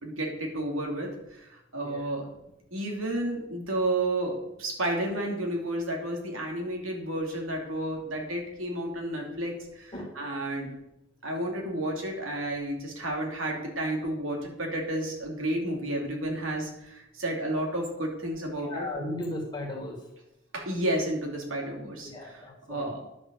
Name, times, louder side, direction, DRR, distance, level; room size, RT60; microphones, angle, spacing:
voice 1, 0.0-2.2 2.7-10.7 11.2-18.9 20.5-22.4 22.7-23.0, right 1 dB, 85° right, 1 dB, 2.9 m, -31 dB
voice 2, 18.6-20.0 22.0-22.9, left 1 dB, 20° left, 0 dB, 2.2 m, -36 dB
10.5 x 6.6 x 7.1 m, 0.87 s
head